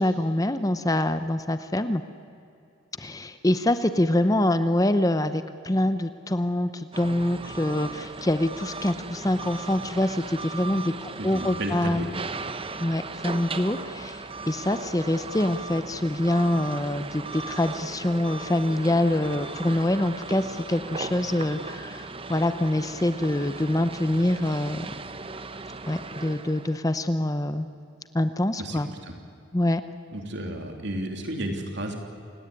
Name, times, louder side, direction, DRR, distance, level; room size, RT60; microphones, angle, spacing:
voice 1, 0.0-2.0 3.0-12.1 12.8-24.9 25.9-27.7 28.1-28.9 29.5-29.8, left 1 dB, 15° left, 11 dB, 0.7 m, -25 dB
sound 1, 6.9-26.8, right 3 dB, 25° right, 0.9 m, -37 dB
voice 2, 11.2-12.1 28.6-29.1 30.1-32.0, right 1 dB, 55° right, 4 dB, 3.4 m, -32 dB
28.5 x 18.0 x 9.7 m, 2.7 s
head